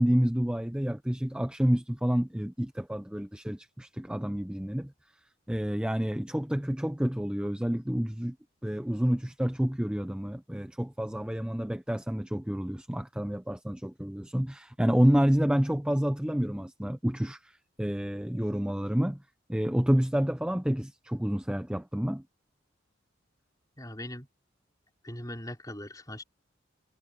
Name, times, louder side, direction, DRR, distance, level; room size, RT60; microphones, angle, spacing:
voice 1, 0.0-4.9 5.5-8.4 8.6-19.2 19.5-22.2, equal, 5° right, 0.5 m, -29 dB
voice 2, 23.8-24.3 25.0-26.2, left 1 dB, 20° left, 4.5 m, -40 dB
head